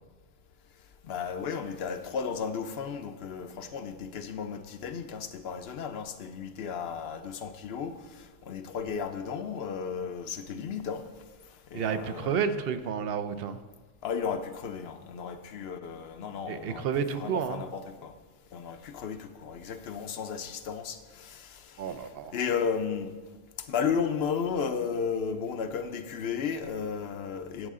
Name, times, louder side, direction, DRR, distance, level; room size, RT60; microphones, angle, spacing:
voice 1, 1.0-11.1 11.7-12.5 14.0-18.1 18.5-23.1 23.6-27.7, left 6 dB, 60° left, 0.8 m, -34 dB
voice 2, 11.7-13.6 16.5-17.6 21.8-22.4, right 7 dB, 60° right, 0.7 m, -31 dB
11.0 x 8.4 x 3.7 m
omnidirectional pair, 1.3 m